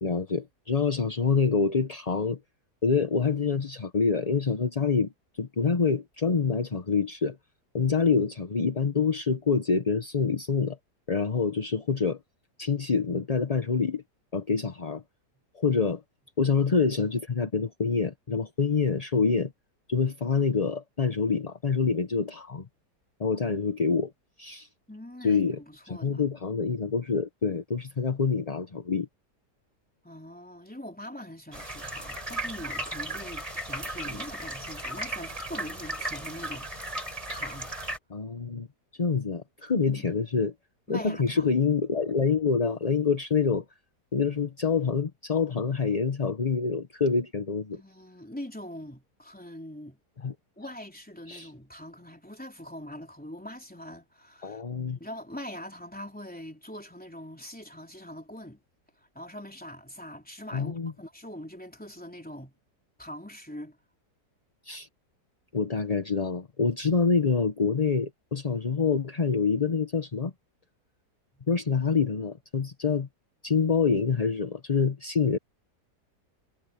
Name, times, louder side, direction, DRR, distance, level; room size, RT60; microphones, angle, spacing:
voice 1, 0.0-2.4 2.8-5.1 5.4-7.4 7.7-10.8 11.1-12.2 12.6-14.0 14.3-15.0 15.5-16.0 16.4-19.5 19.9-22.7 23.2-24.1 24.4-24.7 25.2-25.6 25.9-29.1 38.1-38.7 38.9-40.5 40.9-43.6 44.1-47.8 50.2-50.3 51.3-51.5 54.4-55.0 60.5-60.9 64.6-64.9 65.5-70.3 71.5-73.1 73.4-75.4, left 5 dB, 30° left, 0.9 m, -26 dB
voice 2, 24.9-26.2 30.0-37.7 39.8-40.2 40.9-41.6 47.7-50.0 50.6-54.6 55.0-58.6 59.1-62.5 63.0-63.8, left 1 dB, 5° left, 3.3 m, -43 dB
sound 1, 31.5-38.0, right 1 dB, 20° right, 5.0 m, -36 dB
omnidirectional pair, 1.8 m